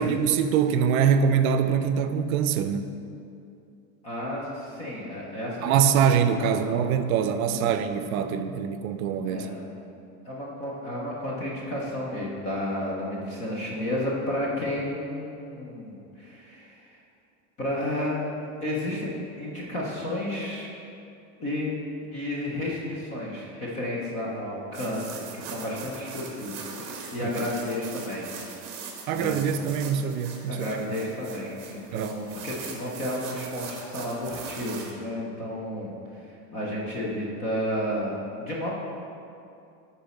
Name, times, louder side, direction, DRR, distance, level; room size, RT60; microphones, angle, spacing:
voice 1, 0.0-2.9 5.6-9.5 27.2-27.5 29.1-30.8 31.9-32.1, right 7 dB, 70° right, 9 dB, 0.6 m, -24 dB
voice 2, 4.0-5.8 6.1-6.9 7.5-7.7 9.2-9.6 10.3-16.8 17.6-18.2 18.6-20.7 21.4-21.8 22.1-28.3 29.1-29.4 30.5-36.2 36.5-38.7, left 1 dB, 20° left, -5 dB, 0.3 m, -32 dB
sound 1, 24.7-34.9, right 5 dB, 40° right, 0.9 m, -41 dB
9.4 x 4.1 x 4.1 m, 2.6 s
supercardioid pair, 175°, 43 cm